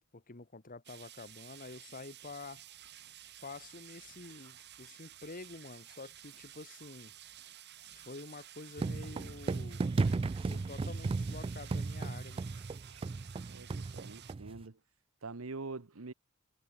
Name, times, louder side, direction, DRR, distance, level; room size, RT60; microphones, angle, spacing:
voice 1, 0.0-2.6 3.4-7.1 7.9-9.8 10.5-12.5, left 3 dB, 40° left, 1.4 m, -48 dB
sound 1, 0.8-14.3, right 12 dB, 55° right, 1.9 m, -53 dB
sound 2, 8.8-14.6, right 3 dB, 25° right, 0.3 m, -35 dB
voice 2, 13.5-14.8 15.2-16.1, right 3 dB, 90° right, 1.1 m, -44 dB
head